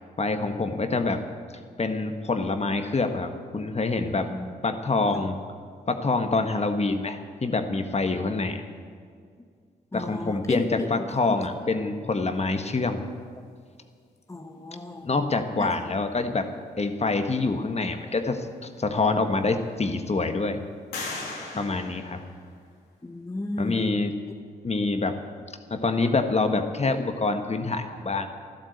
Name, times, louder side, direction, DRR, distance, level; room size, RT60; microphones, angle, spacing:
voice 1, 0.2-1.2 1.8-4.3 4.6-5.4 5.9-8.6 9.9-13.0 15.0-16.5 16.8-20.6 21.6-22.2 23.6-24.1 24.6-25.2 25.7-28.3, left 3 dB, 40° left, 7 dB, 1.5 m, -26 dB
voice 2, 9.9-11.4 14.3-15.1 15.6-15.7 18.0-18.1 21.5-21.6 23.0-23.8, left 1 dB, 15° left, 5 dB, 1.2 m, -34 dB
sound 1, 18.7-18.8 19.3-20.0 20.9-22.9, left 3 dB, 90° left, 2.8 m, -38 dB
12.0 x 11.5 x 8.1 m, 2.1 s
supercardioid pair, 50°, 17 cm